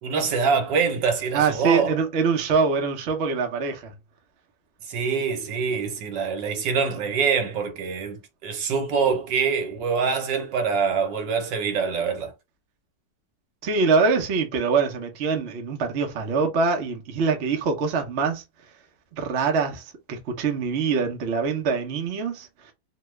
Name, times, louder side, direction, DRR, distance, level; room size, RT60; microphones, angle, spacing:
voice 1, 0.0-1.9 4.9-12.3, right 5 dB, 75° right, 1.4 m, -25 dB
voice 2, 1.3-3.9 13.6-18.4 19.1-22.5, right 5 dB, 55° right, 0.8 m, -24 dB
3.1 x 2.2 x 3.1 m
omnidirectional pair, 1.9 m